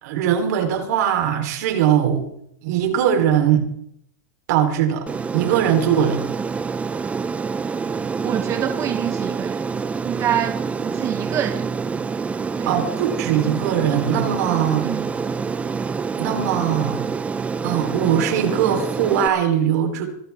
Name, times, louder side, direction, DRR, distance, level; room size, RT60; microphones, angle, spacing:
voice 1, 0.0-2.3 2.6-3.7 4.5-5.1 5.3-6.2 12.7-14.9 16.2-17.0 17.6-20.1, right 9 dB, 70° right, 5 dB, 3.7 m, -20 dB
Aircraft, 5.1-19.3, right 5 dB, 15° right, 0.7 m, -27 dB
voice 2, 8.2-9.6 10.0-11.6 12.6-12.7 14.8-15.1, right 10 dB, 30° right, 7 dB, 1.1 m, -26 dB
24.5 x 12.0 x 3.6 m, 0.70 s
supercardioid pair, 130°, 9 cm